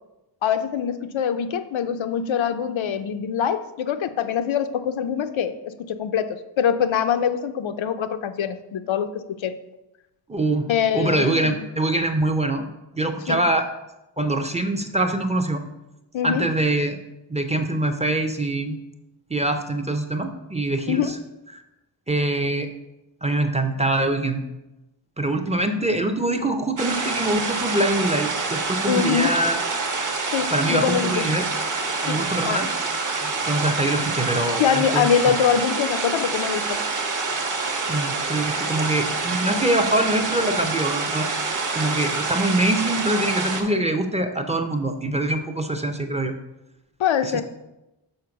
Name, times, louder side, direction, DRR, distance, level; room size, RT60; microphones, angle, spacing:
voice 1, 0.4-9.6 10.7-11.5 13.3-13.4 16.1-16.5 20.9-21.1 28.8-29.3 30.2-31.3 32.0-32.2 32.4-32.6 34.6-36.8 47.0-47.4, left 8 dB, 90° left, 9 dB, 0.6 m, -24 dB
voice 2, 10.3-12.6 12.9-13.7 14.2-15.6 16.2-17.0 17.3-18.8 19.3-21.2 21.5-21.6 22.1-22.7 23.2-24.4 25.2-29.6 30.5-31.5 32.0-32.7 33.2-35.3 37.9-41.3 41.7-46.3 47.2-47.4, right 1 dB, 15° right, 5 dB, 0.5 m, -24 dB
sound 1, 26.8-43.6, right 3 dB, 40° right, 1.0 m, -26 dB
6.5 x 4.5 x 5.8 m, 0.95 s
wide cardioid pair, 140°, 45 cm